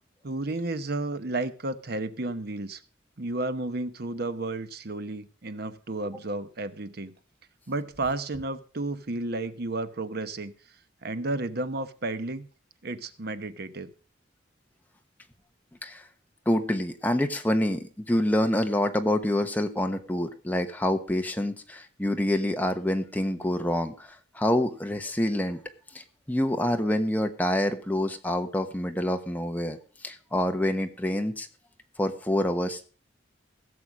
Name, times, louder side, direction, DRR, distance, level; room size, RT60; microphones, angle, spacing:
voice 1, 0.2-2.8 3.2-7.1 7.7-10.5 11.0-12.5 12.8-13.9, right 2 dB, 55° right, 12 dB, 1.0 m, -32 dB
voice 2, 16.4-25.6 25.9-31.5 32.0-32.8, left 1 dB, 10° left, 6 dB, 1.2 m, -27 dB
16.0 x 6.9 x 6.1 m, 0.40 s
head